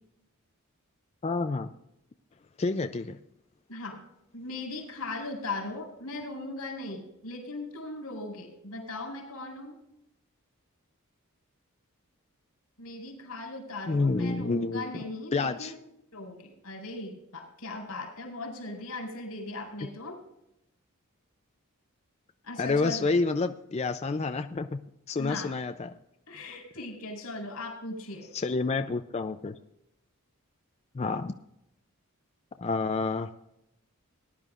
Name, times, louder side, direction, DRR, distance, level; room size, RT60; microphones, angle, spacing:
voice 1, 1.2-1.7 2.6-3.2 13.9-14.9 15.3-15.7 22.6-24.8 25.1-25.9 28.3-29.6 30.9-31.3 32.6-33.3, left 3 dB, 30° left, 8 dB, 0.4 m, -28 dB
voice 2, 3.7-4.0 4.3-9.8 12.8-15.8 16.1-20.2 22.4-23.1 25.2-25.5 26.3-28.3, left 2 dB, 85° left, 1 dB, 4.4 m, -38 dB
19.0 x 11.0 x 2.5 m, 0.82 s
head